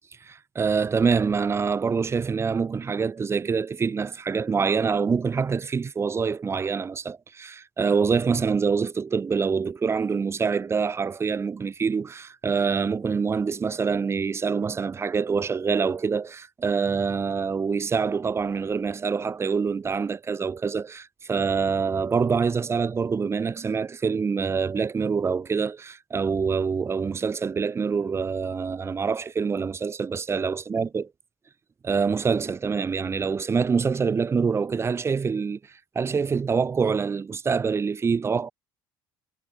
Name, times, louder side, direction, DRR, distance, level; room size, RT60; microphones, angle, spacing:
voice 1, 0.2-31.0 31.8-35.6 36.0-38.5, right 5 dB, 25° right, 0.5 m, -25 dB
hypercardioid pair, 75°, 10 cm